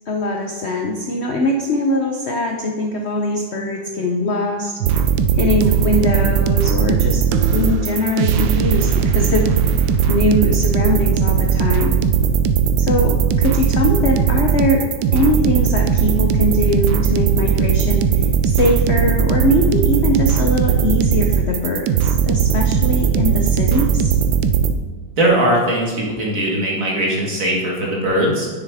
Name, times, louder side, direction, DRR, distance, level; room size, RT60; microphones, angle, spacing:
voice 1, 0.1-5.0 5.4-7.3 7.5-12.0 12.8-14.9 15.1-24.1, left 1 dB, 90° left, 2 dB, 0.5 m, -21 dB
sound 1, 4.8-24.7, right 7 dB, 75° right, 1.2 m, -18 dB
voice 2, 25.2-28.5, right 1 dB, 45° right, -3 dB, 2.1 m, -19 dB
9.5 x 6.9 x 3.5 m, 1.4 s
omnidirectional pair, 2.1 m